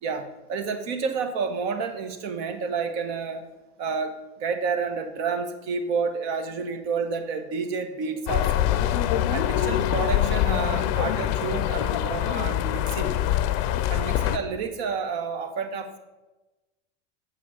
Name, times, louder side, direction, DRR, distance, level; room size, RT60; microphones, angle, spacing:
voice 1, 0.0-3.5 3.8-8.7 9.3-13.2 13.9-16.0, right 5 dB, 55° right, 7 dB, 1.3 m, -30 dB
sound 1, 8.3-14.4, left 11 dB, 50° left, 0.6 m, -24 dB
7.4 x 5.7 x 4.9 m, 1.1 s
hypercardioid pair, 90°, 37 cm